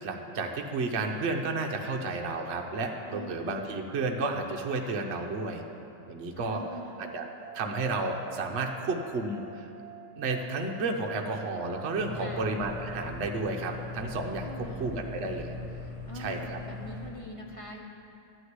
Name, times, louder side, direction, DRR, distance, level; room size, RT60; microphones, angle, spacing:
voice 1, 0.0-5.6 6.1-6.6 7.1-7.3 7.5-9.7 10.2-14.5 14.8-15.5 16.2-16.6, right 3 dB, 45° right, 2 dB, 1.0 m, -32 dB
voice 2, 3.1-3.6 6.4-7.1 12.1-12.5 14.4-15.0 16.1-17.8, left 1 dB, 25° left, -1 dB, 0.7 m, -43 dB
sound 1, 6.3-13.4, right 7 dB, 70° right, 1.2 m, -49 dB
sound 2, 11.9-17.1, left 3 dB, 50° left, 3.4 m, -40 dB
13.0 x 6.4 x 9.5 m, 2.7 s
omnidirectional pair, 2.0 m